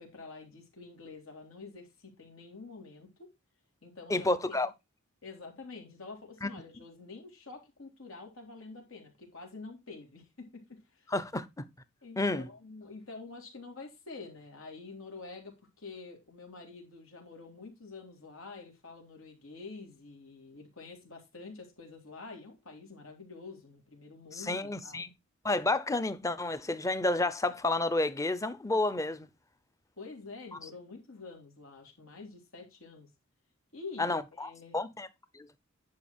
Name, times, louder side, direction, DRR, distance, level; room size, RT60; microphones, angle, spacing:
voice 1, 0.0-3.3 3.8-4.7 5.2-11.1 12.0-25.1 30.0-33.1 33.7-34.8, left 3 dB, 80° left, 3.5 m, -47 dB
voice 2, 4.1-4.7 6.4-6.5 11.1-11.6 12.2-12.5 24.3-25.1 25.4-29.3 34.0-35.1 35.3-35.5, left 2 dB, 15° left, 0.7 m, -30 dB
10.5 x 4.9 x 4.4 m
head